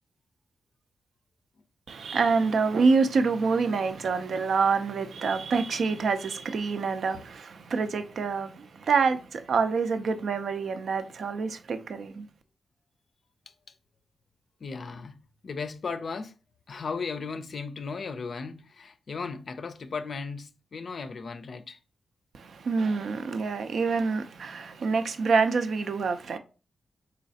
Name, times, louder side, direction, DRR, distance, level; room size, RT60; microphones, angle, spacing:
voice 1, 1.9-12.3 22.3-26.4, right 4 dB, 75° right, 0.4 m, -26 dB
voice 2, 14.6-16.4 16.7-21.8, left 4 dB, 65° left, 0.4 m, -36 dB
4.0 x 3.1 x 2.7 m
supercardioid pair, 45°, 0 cm